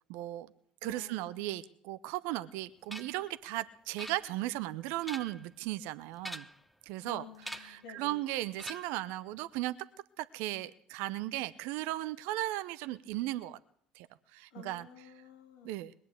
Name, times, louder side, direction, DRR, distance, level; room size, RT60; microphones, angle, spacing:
voice 1, 0.1-0.5 0.8-6.5 6.9-7.2 7.6-9.7 10.2-13.6 13.9-14.1 14.3-14.9 15.6-15.9, right 16 dB, 65° right, 14 dB, 0.6 m, -36 dB
voice 2, 0.8-1.5 7.0-8.2 14.5-15.8, left 6 dB, 70° left, 9 dB, 2.7 m, -51 dB
sound 1, 2.9-3.2 4.0-4.6 4.9-5.5 6.2-6.7 7.4-7.8 8.6-9.1, equal, ahead, 0.7 m, -44 dB
21.0 x 8.4 x 8.2 m, 0.63 s
hypercardioid pair, 60°, 4 cm